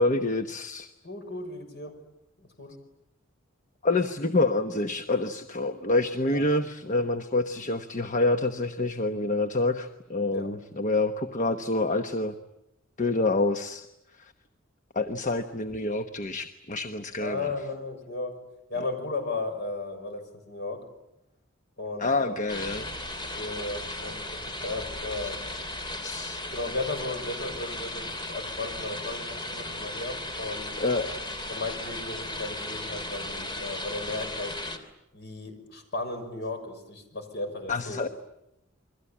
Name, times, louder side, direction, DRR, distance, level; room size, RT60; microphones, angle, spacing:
voice 1, 0.0-0.9 3.8-12.3 13.0-13.9 14.1-14.3 14.9-17.5 22.0-22.9 24.1-24.2 25.2-25.6 26.0-26.4 30.8-31.1 37.7-38.1, left 2 dB, 40° left, 8 dB, 1.1 m, -27 dB
voice 2, 1.0-1.9 2.4-2.7 6.3-6.4 10.3-10.5 17.2-18.3 18.7-20.2 20.5-20.8 21.8-22.3 23.3-25.4 26.5-30.7 31.5-34.5 35.1-38.0, left 2 dB, 55° left, 6 dB, 6.4 m, -35 dB
sound 1, 22.5-34.8, left 1 dB, 25° left, 3.1 m, -36 dB
29.0 x 23.0 x 8.7 m, 0.87 s
head